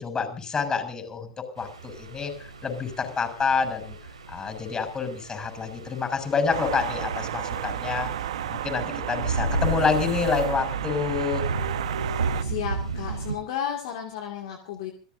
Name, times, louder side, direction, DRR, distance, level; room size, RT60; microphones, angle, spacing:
voice 1, 0.0-2.3 2.6-4.0 4.3-8.1 8.5-11.5, left 5 dB, 25° left, 6 dB, 6.8 m, -28 dB
sound 1, 1.6-13.4, right 2 dB, 90° right, 2.5 m, -34 dB
sound 2, 6.5-12.4, right 10 dB, 75° right, 1.3 m, -31 dB
voice 2, 12.4-14.9, left 9 dB, 65° left, 3 dB, 2.4 m, -33 dB
27.5 x 16.0 x 2.8 m, 0.37 s
hypercardioid pair, 90°, 3 cm